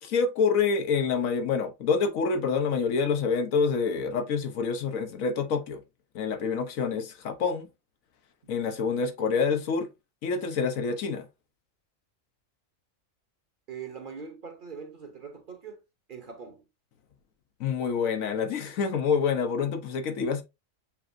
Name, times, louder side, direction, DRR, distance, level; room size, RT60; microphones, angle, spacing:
voice 1, 0.0-5.8 6.1-7.7 8.5-9.9 10.2-11.3 17.6-20.4, left 5 dB, 85° left, 1.2 m, -27 dB
voice 2, 13.7-15.8 16.1-16.6, right 6 dB, 45° right, 0.8 m, -42 dB
6.9 x 2.5 x 2.5 m
omnidirectional pair, 1.4 m